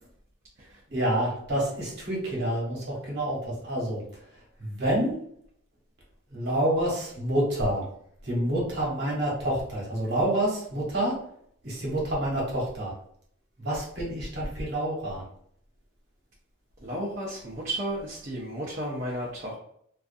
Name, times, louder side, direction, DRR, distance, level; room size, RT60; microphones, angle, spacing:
voice 1, 0.9-4.0 4.6-5.1 6.3-7.9 8.2-11.2 11.6-12.9 13.6-15.2, right 1 dB, 55° right, -3 dB, 1.0 m, -28 dB
voice 2, 16.8-19.6, right 1 dB, 35° right, -5 dB, 0.5 m, -33 dB
2.5 x 2.3 x 2.5 m, 0.67 s
head